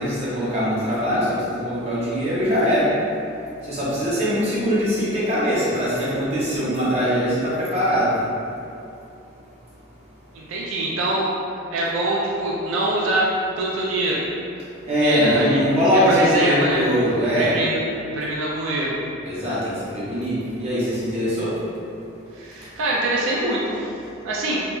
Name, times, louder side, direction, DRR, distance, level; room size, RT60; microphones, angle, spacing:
voice 1, 0.0-2.9 3.7-8.1 14.9-17.5 19.2-21.5, equal, 30° right, -10 dB, 0.6 m, -22 dB
voice 2, 10.3-11.3 11.7-13.3 13.6-14.2 15.0-15.6 16.1-16.8 17.4-17.8 18.1-19.0 22.3-23.8 24.2-24.6, right 1 dB, 80° right, -4 dB, 0.3 m, -23 dB
2.7 x 2.2 x 2.3 m, 2.6 s
head